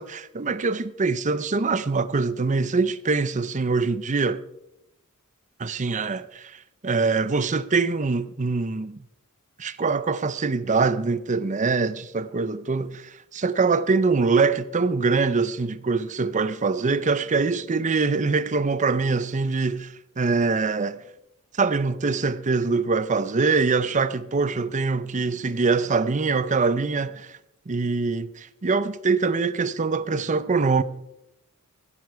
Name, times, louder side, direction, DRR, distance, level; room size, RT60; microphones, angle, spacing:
voice 1, 0.0-4.4 5.6-9.0 9.6-21.0 21.6-27.4 27.7-30.8, right 4 dB, 35° right, 0.6 m, -24 dB
15.5 x 11.5 x 4.6 m
head